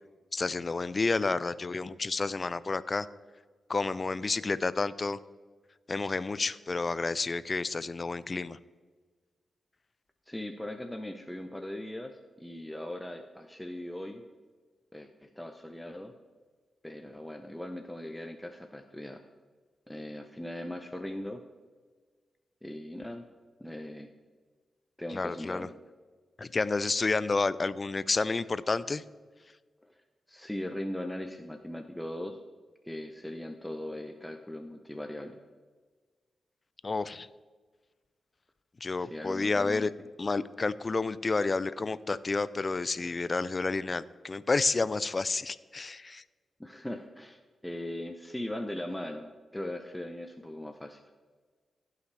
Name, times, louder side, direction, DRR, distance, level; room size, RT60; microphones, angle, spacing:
voice 1, 0.3-3.1 3.7-5.2 5.9-8.6 25.1-25.7 26.4-29.0 36.8-37.3 38.8-39.9 40.2-46.2, left 3 dB, 40° left, 17 dB, 0.4 m, -30 dB
voice 2, 10.3-14.2 14.9-16.1 16.8-19.2 19.9-21.4 22.6-23.3 23.6-24.1 25.0-25.7 29.8-29.9 30.3-32.4 32.8-35.4 39.0-39.9 46.6-51.0, left 1 dB, 5° left, 5 dB, 0.6 m, -39 dB
15.5 x 5.8 x 3.3 m, 1.4 s
cardioid pair, 70°, 0 cm